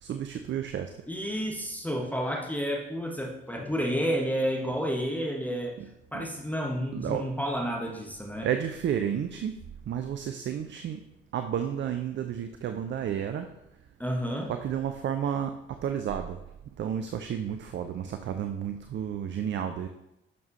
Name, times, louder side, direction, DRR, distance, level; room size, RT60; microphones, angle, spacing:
voice 1, 0.0-0.9 6.1-6.3 6.9-7.3 8.4-9.5 9.9-11.0 11.3-13.5 14.5-16.4 16.8-19.9, right 9 dB, 40° right, 7 dB, 0.5 m, -31 dB
voice 2, 1.1-5.7 6.1-8.5 14.0-14.5, equal, 5° left, 0 dB, 1.2 m, -30 dB
8.4 x 6.7 x 2.8 m, 0.87 s
figure-of-eight pair, 40°, 30 cm